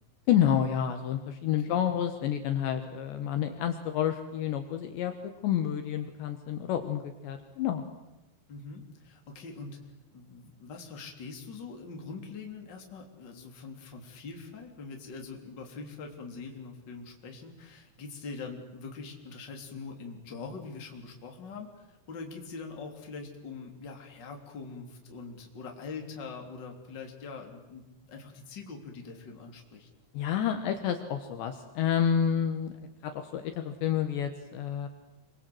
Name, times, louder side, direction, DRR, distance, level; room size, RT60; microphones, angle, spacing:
voice 1, 0.3-5.1 5.4-7.8 30.1-32.7 33.0-34.9, left 9 dB, 70° left, 7 dB, 3.4 m, -29 dB
voice 2, 8.5-29.9, left 4 dB, 25° left, 3 dB, 3.1 m, -43 dB
27.0 x 24.5 x 7.9 m, 1.0 s
omnidirectional pair, 5.8 m